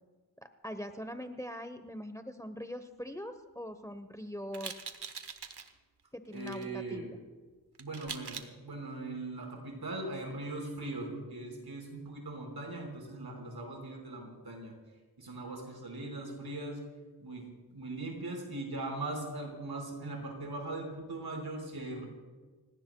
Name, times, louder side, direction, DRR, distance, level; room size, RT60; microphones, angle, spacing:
voice 1, 0.4-4.7 6.1-7.2, equal, 10° left, 9 dB, 0.9 m, -42 dB
sound 1, 4.5-5.7 6.3-6.7 7.8-8.5, right 6 dB, 90° right, 1.1 m, -43 dB
voice 2, 6.3-7.1 7.8-14.7 15.2-16.8 17.2-22.1, right 2 dB, 75° right, 1 dB, 5.0 m, -40 dB
29.5 x 17.5 x 2.3 m, 1.3 s
wide cardioid pair, 75°, 39 cm